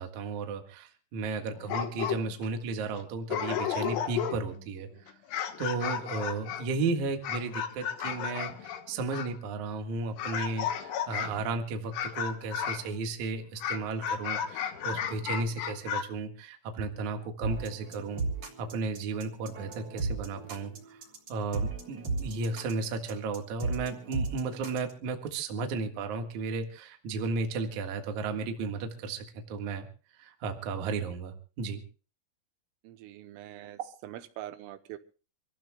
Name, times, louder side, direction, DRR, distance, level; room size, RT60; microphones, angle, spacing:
voice 1, 0.0-5.2 5.6-18.2 18.6-21.0 21.3-29.9 30.2-31.8 33.8-33.9, right 3 dB, 55° right, 5 dB, 2.2 m, -34 dB
sound 1, 1.6-2.4 3.0-3.1 3.3-4.6 5.1-9.3 10.2-11.4 11.9-12.9 13.6-16.0, left 8 dB, 70° left, 2.2 m, -33 dB
sound 2, 17.4-24.9, right 3 dB, 35° right, 3.6 m, -35 dB
voice 2, 32.8-35.0, right 13 dB, 85° right, 10 dB, 3.5 m, -44 dB
27.5 x 15.0 x 2.3 m, 0.35 s
omnidirectional pair, 5.8 m